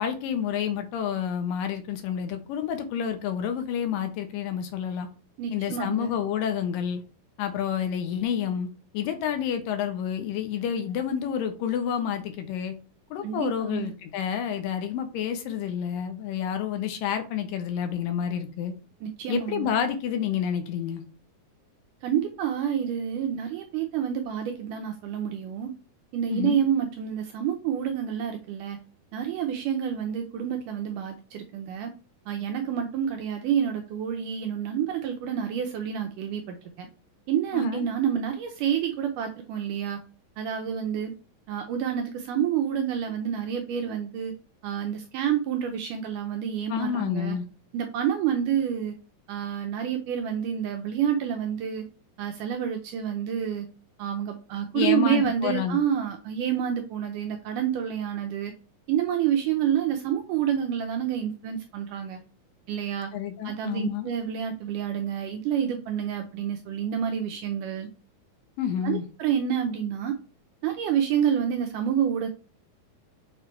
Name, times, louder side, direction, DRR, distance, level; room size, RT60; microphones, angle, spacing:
voice 1, 0.0-5.1 5.5-7.0 7.4-8.7 8.9-12.7 13.1-18.7 19.3-21.0 26.3-26.6 37.5-37.9 46.7-47.4 54.7-55.8 63.1-64.1 68.6-69.1, left 8 dB, 75° left, 7 dB, 2.3 m, -29 dB
voice 2, 5.4-6.1 13.2-13.9 19.0-19.7 22.0-25.7 26.1-28.8 29.1-31.9 32.3-36.9 37.3-40.0 40.4-41.1 41.5-44.3 44.6-47.4 47.7-48.9 49.3-51.9 52.2-53.7 54.0-58.5 58.9-62.2 62.7-63.1 63.4-67.9 68.8-70.1 70.6-72.3, right 9 dB, 80° right, 4 dB, 1.9 m, -28 dB
6.8 x 3.1 x 4.4 m, 0.36 s
omnidirectional pair, 4.3 m